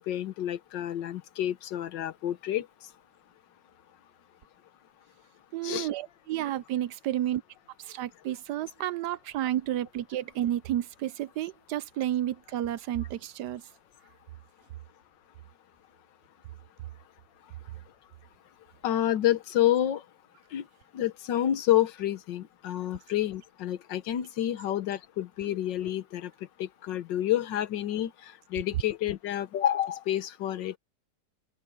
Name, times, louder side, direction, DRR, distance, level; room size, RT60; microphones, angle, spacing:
voice 1, 0.0-2.9 5.6-5.9 18.8-20.0 20.5-20.7 20.9-26.3 26.6-30.8, left 12 dB, 80° left, 1.6 m, -29 dB
voice 2, 5.5-7.4 7.8-13.6, right 12 dB, 75° right, 1.2 m, -31 dB
open air
omnidirectional pair, 1.9 m